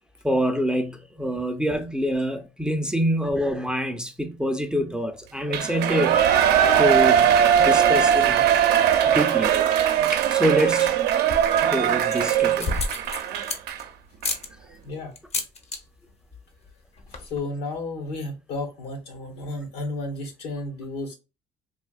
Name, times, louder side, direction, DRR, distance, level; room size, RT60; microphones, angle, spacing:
voice 1, 0.2-6.2 6.8-8.5 9.0-9.5 10.1-11.0 11.6-12.8, equal, 5° right, 0.5 m, -26 dB
Shout / Cheering, 5.5-13.8 14.2-14.3, right 9 dB, 75° right, 0.6 m, -20 dB
sound 1, 11.1-11.6 12.0-13.8 14.2-14.5 15.2-15.8 16.1-16.4 16.7-16.8 17.0-17.4, left 3 dB, 40° left, 0.8 m, -30 dB
voice 2, 17.2-21.1, left 2 dB, 80° left, 1.4 m, -32 dB
3.5 x 2.6 x 2.3 m
cardioid pair, 110°, 17 cm